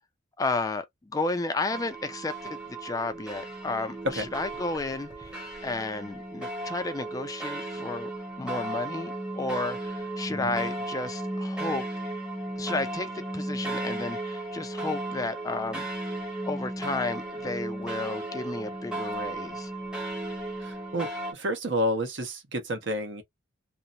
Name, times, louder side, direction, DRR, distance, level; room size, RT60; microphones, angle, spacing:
voice 1, 0.4-8.1 8.4-11.8 12.6-15.9 16.5-19.7, left 3 dB, 15° left, 0.3 m, -32 dB
sound 1, 1.7-21.3, right 1 dB, 5° right, 0.8 m, -35 dB
voice 2, 20.6-23.2, equal, 60° right, 0.9 m, -30 dB
2.8 x 2.0 x 2.4 m
head